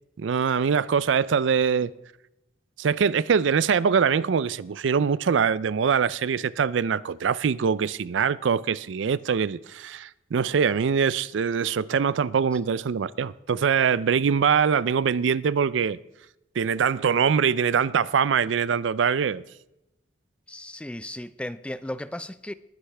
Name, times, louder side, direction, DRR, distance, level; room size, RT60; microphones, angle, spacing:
voice 1, 0.2-1.9 2.8-16.0 16.6-19.4, right 6 dB, 85° right, 0.4 m, -23 dB
voice 2, 20.5-22.5, left 1 dB, 5° left, 0.4 m, -35 dB
20.0 x 10.0 x 3.4 m
head